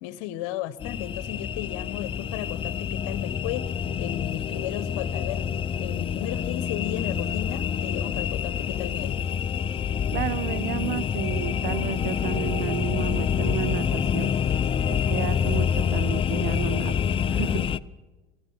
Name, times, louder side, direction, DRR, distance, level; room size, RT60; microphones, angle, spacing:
voice 1, 0.0-5.5 5.8-9.3, left 13 dB, 75° left, 17 dB, 1.0 m, -34 dB
sound 1, 0.8-17.8, left 7 dB, 35° left, 0.7 m, -27 dB
voice 2, 10.1-14.3 14.9-17.0 17.3-17.7, right 14 dB, 65° right, 15 dB, 0.8 m, -32 dB
24.5 x 15.5 x 7.2 m, 1.2 s
supercardioid pair, 85°, 17 cm